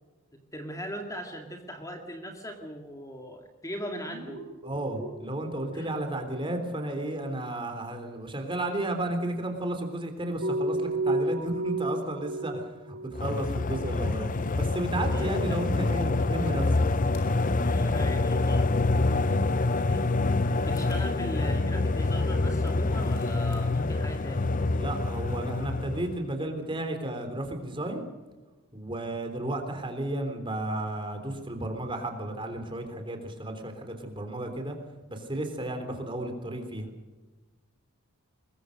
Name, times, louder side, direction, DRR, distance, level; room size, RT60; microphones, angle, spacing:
voice 1, 0.3-4.4 5.7-6.0 15.1-15.6 17.6-18.7 19.8-20.1 20.3-24.5, equal, 15° left, 4 dB, 2.1 m, -39 dB
sound 1, 3.9-6.2 6.5-7.1 10.4-13.3 13.6-13.8 15.3-18.1, right 1 dB, 75° right, 6.4 m, -35 dB
voice 2, 4.6-14.3 14.6-16.7 24.7-28.0 28.7-34.8 35.1-36.9, right 1 dB, 25° right, 5 dB, 3.5 m, -33 dB
sound 2, 13.1-26.2, left 2 dB, 40° left, 0.8 m, -26 dB
sound 3, 16.4-17.3 19.5-21.0 22.5-23.6, left 2 dB, 70° left, 5.6 m, -52 dB
22.0 x 21.5 x 6.5 m, 1.2 s
head